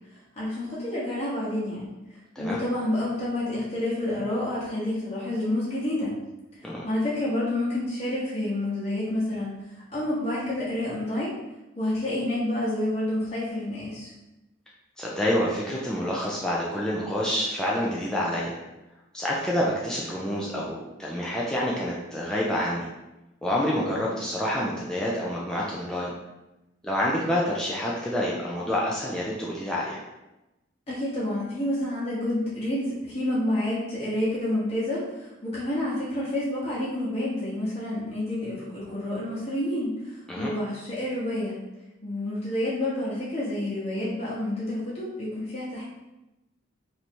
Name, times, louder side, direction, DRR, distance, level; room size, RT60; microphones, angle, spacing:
voice 1, 0.4-1.9 2.4-6.1 6.6-9.5 9.9-11.3 11.7-14.1 30.9-41.6 42.0-45.8, left 1 dB, 30° left, -8 dB, 1.0 m, -29 dB
voice 2, 15.0-18.6 19.1-22.9 23.4-26.1 26.8-30.0 40.3-40.5, equal, 5° left, -5 dB, 0.4 m, -28 dB
3.2 x 2.7 x 4.4 m, 0.98 s
head